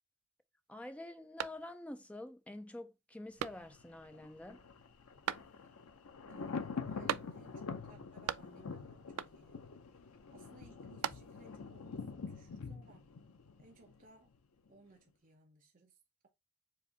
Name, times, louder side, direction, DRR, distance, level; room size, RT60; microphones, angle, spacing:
voice 1, 0.7-4.6, left 1 dB, 5° left, 0.5 m, -47 dB
sound 1, 1.4-2.1 2.5-2.6 3.4-4.0 5.3-5.9 7.1-7.7 7.9-8.8 9.2-9.7 10.7-11.6, right 10 dB, 80° right, 0.3 m, -41 dB
Thunder, 3.4-14.4 14.7-14.8, left 5 dB, 75° left, 0.6 m, -46 dB
voice 2, 6.3-9.6 10.3-13.0 13.6-14.3 14.7-16.0, right 3 dB, 40° right, 0.8 m, -62 dB
4.8 x 2.6 x 3.9 m
head